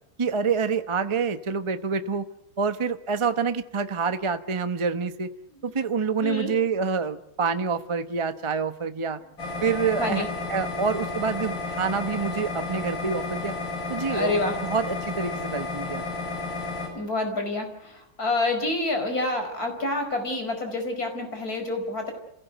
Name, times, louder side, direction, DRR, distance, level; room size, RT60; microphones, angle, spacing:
voice 1, 0.2-2.3 2.6-5.3 5.6-9.2 9.6-10.2 10.5-13.5 13.9-14.4 14.6-16.0, right 5 dB, 30° right, 10 dB, 0.6 m, -27 dB
voice 2, 6.2-6.5 10.0-10.3 14.0-14.6 16.9-22.1, left 2 dB, 45° left, 5 dB, 5.4 m, -28 dB
sound 1, 9.4-16.9, left 3 dB, 70° left, 7.2 m, -32 dB
28.5 x 16.5 x 8.0 m, 0.86 s
omnidirectional pair, 2.2 m